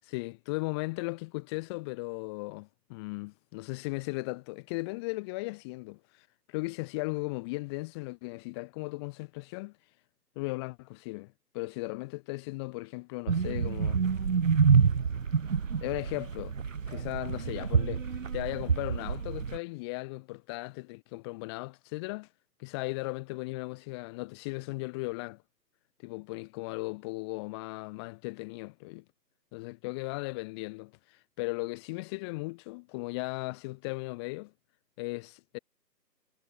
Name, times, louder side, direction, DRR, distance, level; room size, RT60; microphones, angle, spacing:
voice 1, 0.0-9.7 10.3-14.0 14.7-14.9 15.8-16.6 16.9-22.3 22.6-25.4 26.0-29.0 29.5-34.5 35.0-35.6, left 25 dB, 15° left, 6.3 m, -37 dB
sound 1, 13.3-19.6, right 6 dB, 50° right, 1.0 m, -27 dB
figure-of-eight pair, 160°, 50 cm